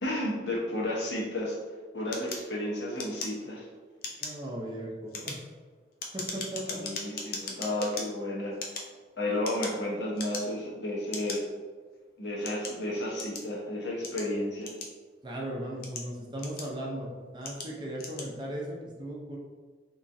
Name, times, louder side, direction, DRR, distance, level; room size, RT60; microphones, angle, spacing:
voice 1, 0.0-1.6 1.9-3.7 6.7-8.6 9.2-11.5 12.2-14.7, left 1 dB, 75° left, -4 dB, 0.9 m, -32 dB
sound 1, 2.1-3.7 4.0-4.4 5.0-8.0 8.5-9.8 10.1-10.7 11.1-11.4 12.0-13.5 14.0-15.2 15.7-16.9 17.4-17.7 18.0-18.3, left 4 dB, 50° left, 0.5 m, -38 dB
voice 2, 4.2-5.4 6.1-6.8 15.2-19.4, right 1 dB, 25° right, -2 dB, 0.5 m, -37 dB
3.6 x 3.0 x 2.6 m, 1.5 s
head